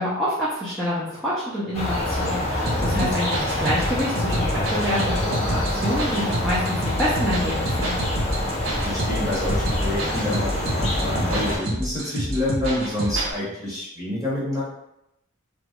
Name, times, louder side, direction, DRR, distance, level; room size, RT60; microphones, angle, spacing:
voice 1, 0.0-7.9, equal, ahead, -10 dB, 0.5 m, -27 dB
sound 1, 1.7-11.6, left 1 dB, 30° left, 0.7 m, -26 dB
sound 2, 2.7-13.3, right 1 dB, 65° right, 0.6 m, -29 dB
voice 2, 2.8-3.1 8.8-14.6, left 1 dB, 15° right, -8 dB, 1.2 m, -28 dB
3.0 x 2.3 x 2.9 m, 0.83 s
head